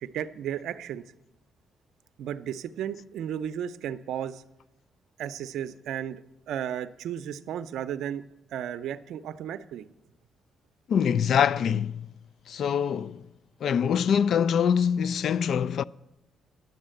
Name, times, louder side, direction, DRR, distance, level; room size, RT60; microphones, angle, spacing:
voice 1, 0.0-1.0 2.2-4.4 5.2-8.2 8.5-9.9, right 9 dB, 80° right, 0.5 m, -34 dB
voice 2, 10.9-12.1 12.5-13.2 13.6-15.8, left 7 dB, 65° left, 0.3 m, -24 dB
10.5 x 7.3 x 7.7 m
cardioid pair, 90°, 0 cm